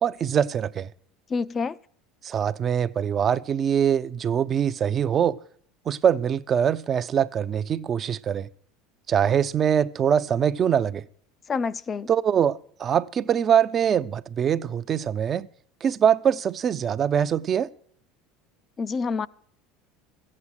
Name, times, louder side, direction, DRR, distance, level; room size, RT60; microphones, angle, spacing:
voice 1, 0.0-0.9 2.2-5.4 5.9-8.5 9.1-11.0 12.1-15.5 15.8-17.7, right 8 dB, 40° right, 0.6 m, -23 dB
voice 2, 1.3-1.8 11.5-12.1 18.8-19.3, left 5 dB, 30° left, 0.5 m, -27 dB
14.5 x 8.6 x 6.3 m
hypercardioid pair, 80°, 0 cm